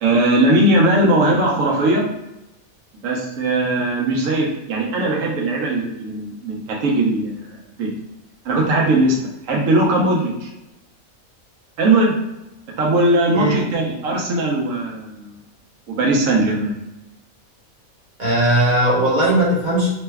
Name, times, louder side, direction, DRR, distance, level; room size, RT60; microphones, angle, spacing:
voice 1, 0.0-2.0 3.0-7.9 8.4-9.2 9.4-10.5 11.8-12.2 12.8-15.4 15.9-16.8, right 2 dB, 70° right, -2 dB, 1.1 m, -19 dB
voice 2, 18.2-19.9, right 1 dB, 35° right, -5 dB, 1.0 m, -18 dB
3.2 x 2.2 x 3.4 m, 0.92 s
omnidirectional pair, 1.5 m